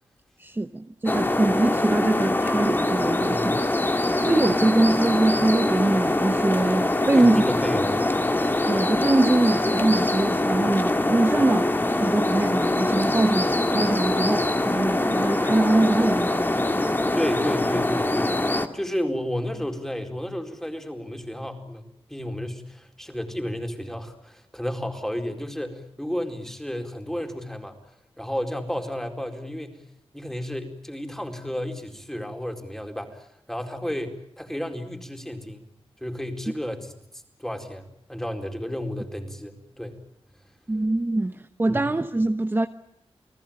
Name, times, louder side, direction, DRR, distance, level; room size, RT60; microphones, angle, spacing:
voice 1, 0.4-3.6 3.9-4.0 4.3-7.4 8.7-11.7 12.0-17.0 40.7-42.7, right 2 dB, 20° right, 1.1 m, -23 dB
sound 1, 1.1-18.7, left 2 dB, 20° left, 2.2 m, -23 dB
voice 2, 7.1-8.0 17.1-18.3 18.7-21.8 22.1-27.7 28.2-29.8 30.1-35.7 36.0-37.0 37.4-40.0 41.7-41.8, equal, 5° left, 4.4 m, -32 dB
30.0 x 19.5 x 8.9 m
wide cardioid pair, 90°, 10 cm